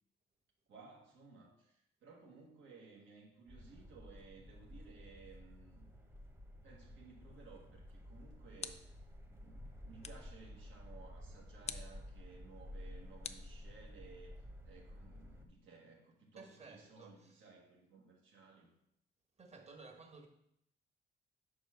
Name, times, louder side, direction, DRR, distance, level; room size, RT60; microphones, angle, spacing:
voice 1, 0.7-5.9 6.6-8.9 9.3-14.4 14.6-18.7, right 4 dB, 75° right, 1.6 m, -58 dB
sound 1, 3.5-15.5, left 1 dB, 10° right, 0.9 m, -53 dB
sound 2, 7.9-9.1 10.0-10.4 11.6-12.0 13.2-14.1, left 6 dB, 35° left, 0.5 m, -48 dB
voice 2, 16.3-17.5 19.4-20.3, right 3 dB, 35° right, 1.3 m, -55 dB
5.0 x 4.3 x 5.7 m
cardioid pair, 90°, 20 cm